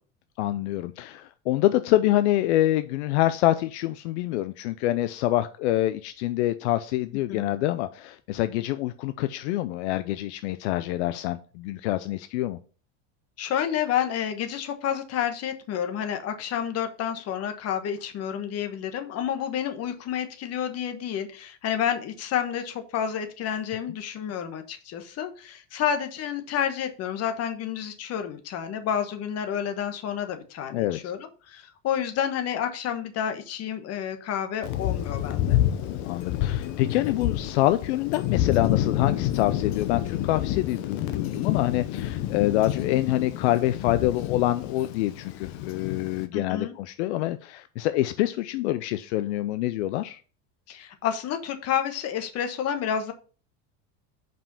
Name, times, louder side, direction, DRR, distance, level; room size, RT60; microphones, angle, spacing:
voice 1, 0.4-12.6 30.7-31.0 36.0-50.2, left 15 dB, 85° left, 12 dB, 0.6 m, -26 dB
voice 2, 13.4-35.6 42.4-42.6 46.3-46.7 50.7-53.1, left 9 dB, 50° left, 7 dB, 1.3 m, -30 dB
Thunder, 34.6-46.3, left 12 dB, 70° left, 1.0 m, -28 dB
5.4 x 5.2 x 5.4 m, 0.38 s
supercardioid pair, 110°, 33 cm